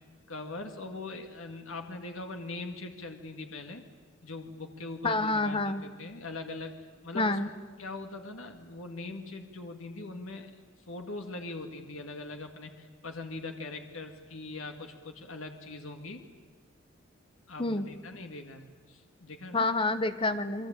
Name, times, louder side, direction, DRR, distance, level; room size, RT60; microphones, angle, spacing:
voice 1, 0.3-3.8 4.2-6.8 7.0-7.4 7.8-10.5 10.9-16.2 17.5-19.7, left 2 dB, 70° left, 5 dB, 2.1 m, -41 dB
voice 2, 5.0-5.8 7.1-7.5 17.6-17.8 19.5-20.7, left 2 dB, 25° left, 11 dB, 1.1 m, -28 dB
28.5 x 22.0 x 8.9 m, 1.5 s
head